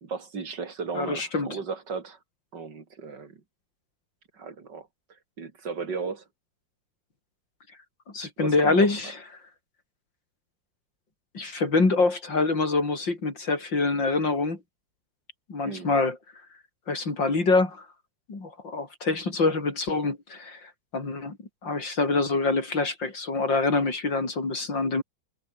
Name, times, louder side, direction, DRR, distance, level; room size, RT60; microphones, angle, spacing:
voice 1, 0.0-2.2 2.5-3.4 4.3-4.9 5.4-6.2 8.4-8.9 15.6-15.9, right 5 dB, 70° right, 3.2 m, -35 dB
voice 2, 1.0-1.6 8.1-9.2 11.3-14.6 15.5-16.2 16.9-17.9 18.3-21.4 21.6-25.0, left 3 dB, 80° left, 5.5 m, -25 dB
omnidirectional pair, 2.0 m